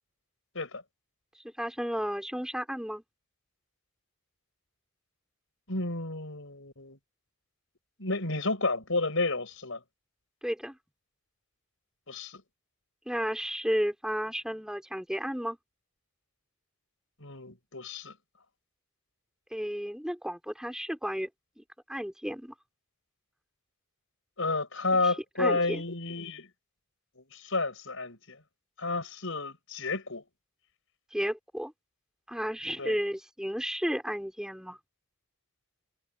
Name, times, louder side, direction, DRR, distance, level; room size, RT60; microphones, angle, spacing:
voice 1, 1.4-3.0 10.4-10.8 13.1-15.6 19.5-21.3 21.6-21.7 21.9-22.5 25.0-25.8 31.1-31.7 32.3-34.8, equal, 5° right, 3.8 m, -33 dB
voice 2, 5.7-7.0 8.0-9.8 12.1-12.4 17.2-18.1 24.4-26.5 27.2-28.4 28.8-30.2 32.8-33.0, left 3 dB, 60° left, 7.7 m, -31 dB
head